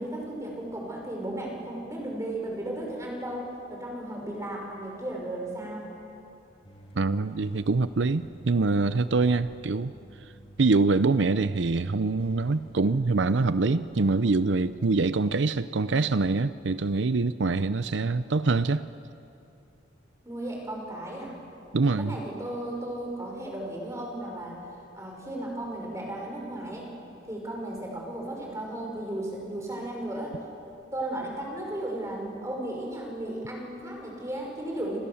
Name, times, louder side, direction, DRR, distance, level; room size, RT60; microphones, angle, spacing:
voice 1, 0.0-5.9 20.2-21.3 22.0-24.6 24.9-26.9 27.3-30.4 30.9-35.0, right 1 dB, 15° right, 0 dB, 6.0 m, -35 dB
sound 1, 6.6-15.1, right 1 dB, 30° left, 2.4 m, -50 dB
voice 2, 7.0-9.9 10.6-18.8 21.7-22.2, right 3 dB, 70° right, 13 dB, 0.6 m, -24 dB
29.5 x 27.0 x 7.2 m, 2.8 s
head